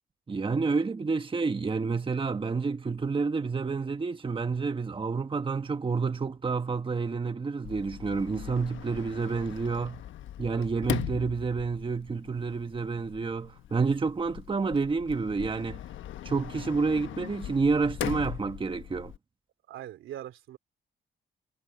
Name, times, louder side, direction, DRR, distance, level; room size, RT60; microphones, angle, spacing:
voice 1, 0.3-10.0 10.4-15.8 16.2-19.1, right 4 dB, 25° right, 1.3 m, -29 dB
Sliding door, 7.6-19.2, left 12 dB, 75° left, 1.2 m, -40 dB
voice 2, 10.5-10.8 19.7-20.6, right 12 dB, 80° right, 2.8 m, -42 dB
cardioid pair, 90°, 20 cm